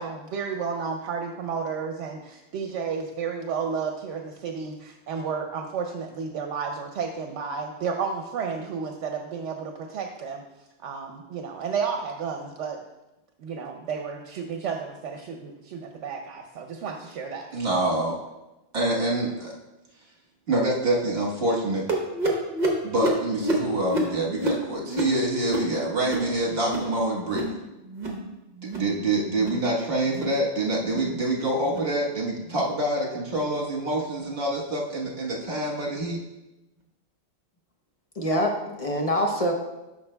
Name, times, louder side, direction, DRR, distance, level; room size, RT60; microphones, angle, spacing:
voice 1, 0.0-10.4 10.8-12.8 13.4-17.5, right 6 dB, 80° right, 4 dB, 0.9 m, -32 dB
voice 2, 17.5-18.2 18.7-19.5 20.5-21.8 22.8-27.6 28.8-36.2, right 1 dB, 55° right, -3 dB, 1.5 m, -26 dB
sound 1, 21.9-26.9 27.2-27.6 27.9-28.3 28.6-28.9 29.3-29.7 30.1-30.4 30.8-31.1 31.6-31.9 32.5-32.7 33.3-33.5 34.2-34.3 35.1-35.2, right 1 dB, 40° right, 1.1 m, -29 dB
voice 3, 38.2-39.5, equal, 35° left, 1 dB, 0.7 m, -25 dB
10.0 x 6.1 x 2.2 m, 0.99 s
omnidirectional pair, 1.2 m